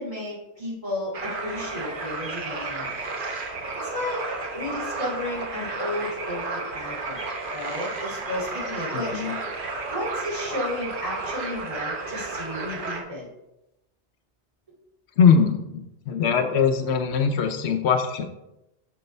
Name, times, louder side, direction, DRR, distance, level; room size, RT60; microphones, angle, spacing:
voice 1, 0.0-2.9 3.7-4.3 4.5-7.2 7.5-9.2 9.9-13.3, left 1 dB, 30° right, -5 dB, 2.4 m, -33 dB
sound 1, 1.1-13.0, right 3 dB, 55° right, 1.1 m, -32 dB
voice 2, 8.9-9.3 15.2-18.3, left 6 dB, 80° left, 8 dB, 0.9 m, -21 dB
6.6 x 6.5 x 3.2 m, 0.91 s
omnidirectional pair, 1.1 m